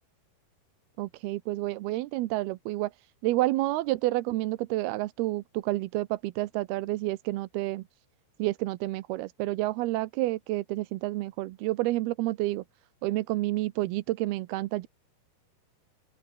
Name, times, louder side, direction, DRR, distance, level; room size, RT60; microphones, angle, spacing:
voice 1, 1.0-2.9 3.2-7.8 8.4-12.6 13.0-14.9, right 18 dB, 85° right, 2.8 m, -29 dB
open air
omnidirectional pair, 4.5 m